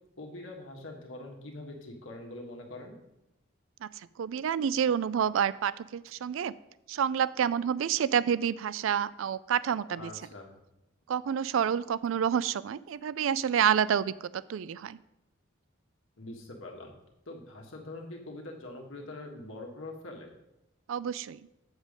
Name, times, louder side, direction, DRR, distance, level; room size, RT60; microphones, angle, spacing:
voice 1, 0.2-2.9 9.9-10.5 16.2-16.9 17.3-20.3, left 2 dB, 85° left, 1 dB, 1.6 m, -43 dB
voice 2, 4.2-6.5 6.9-10.1 11.1-15.0 20.9-21.4, right 8 dB, 85° right, 18 dB, 0.3 m, -28 dB
7.3 x 7.2 x 5.1 m, 0.89 s
head